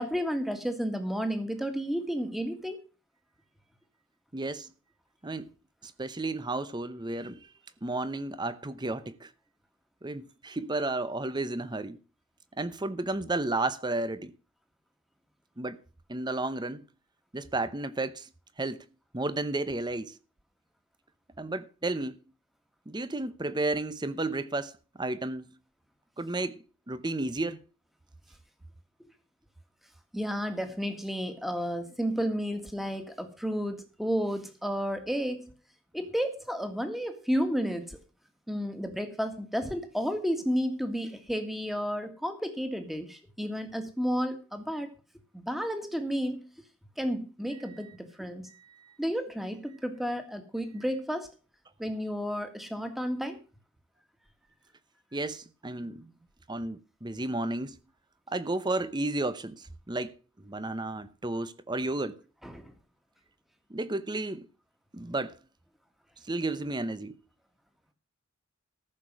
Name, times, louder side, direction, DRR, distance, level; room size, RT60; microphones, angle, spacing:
voice 1, 0.0-2.8 30.1-35.5 35.9-38.0 38.5-44.9 45.3-46.4 47.0-48.4 49.0-51.3 51.8-53.4 62.4-62.7, equal, ahead, 1.8 m, -32 dB
voice 2, 4.3-4.7 5.2-5.5 5.8-7.5 7.8-9.3 10.0-12.0 12.6-14.3 15.6-15.8 16.1-16.9 17.3-18.3 18.6-18.8 19.1-20.2 21.4-22.2 22.9-25.6 26.2-27.6 48.5-48.9 55.1-56.1 56.5-57.8 58.3-62.2 63.7-64.5 64.9-65.3 66.3-67.2, right 2 dB, 20° right, 0.8 m, -33 dB
14.0 x 6.9 x 6.1 m
head